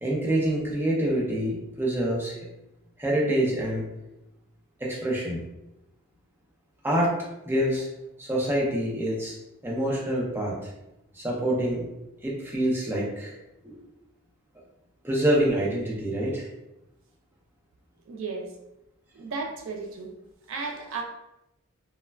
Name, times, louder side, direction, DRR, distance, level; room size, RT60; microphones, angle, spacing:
voice 1, 0.0-2.4 3.0-3.8 4.8-5.4 6.8-7.2 7.5-7.9 8.2-9.4 9.6-10.5 11.1-11.9 12.2-13.3 13.6-13.8 15.0-16.5, right 1 dB, 10° right, -4 dB, 0.5 m, -26 dB
voice 2, 18.1-18.5 19.1-20.1 20.5-21.0, right 4 dB, 60° right, 2 dB, 0.4 m, -34 dB
3.2 x 2.1 x 2.2 m, 0.90 s
head